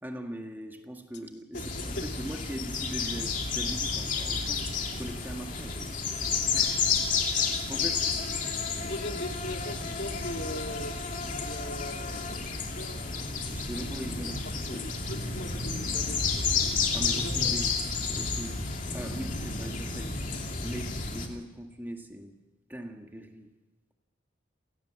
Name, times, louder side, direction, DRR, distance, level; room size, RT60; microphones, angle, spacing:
voice 1, 0.0-8.4 13.5-14.9 16.9-17.8 18.1-18.7 18.9-20.2 20.6-22.3 22.7-23.5, right 1 dB, 10° right, 3 dB, 1.8 m, -41 dB
voice 2, 1.5-2.0 7.8-7.9 8.4-8.5 8.8-10.9 11.3-12.5 12.8-13.0 14.7-16.9 17.2-17.5, left 1 dB, 60° left, 3 dB, 2.9 m, -40 dB
sound 1, 1.5-21.3, left 5 dB, 40° left, 2.7 m, -31 dB
29.0 x 17.5 x 7.4 m, 1.0 s
head